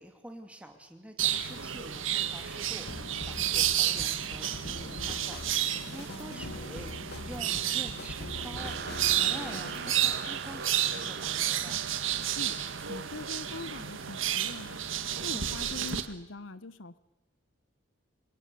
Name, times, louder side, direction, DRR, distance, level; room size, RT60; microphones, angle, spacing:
voice 1, 0.0-5.4 5.9-11.8, equal, 5° right, 5 dB, 2.7 m, -47 dB
sound 1, 1.2-16.0, right 10 dB, 75° right, 1.7 m, -31 dB
sound 2, 2.9-10.0, left 2 dB, 55° left, 1.9 m, -42 dB
voice 2, 6.1-6.6 12.4-12.6 12.9-14.8 15.2-17.0, left 3 dB, 75° left, 15 dB, 1.0 m, -43 dB
sound 3, 8.6-16.1, right 6 dB, 50° right, 1.1 m, -44 dB
27.5 x 25.5 x 7.0 m, 0.96 s
head